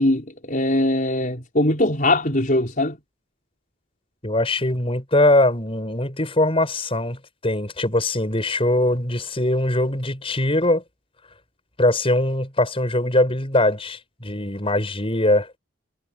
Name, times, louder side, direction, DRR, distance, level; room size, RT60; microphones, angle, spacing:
voice 1, 0.0-3.0, left 1 dB, 45° left, 5.1 m, -21 dB
voice 2, 4.2-10.8 11.8-15.5, left 1 dB, 30° left, 7.5 m, -21 dB
head